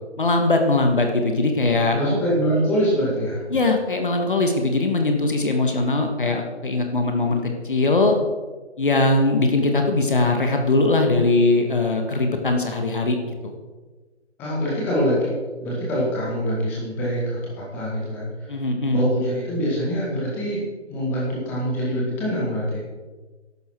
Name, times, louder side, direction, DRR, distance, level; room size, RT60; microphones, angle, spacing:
voice 1, 0.2-2.0 3.5-8.1 8.8-13.5 18.5-19.1, left 2 dB, 45° left, 3 dB, 1.7 m, -21 dB
voice 2, 1.9-3.4 14.4-15.4 15.6-18.3 18.9-22.8, equal, 5° left, -6 dB, 2.0 m, -24 dB
14.5 x 11.5 x 4.6 m, 1.3 s
figure-of-eight pair, 160°, 35 cm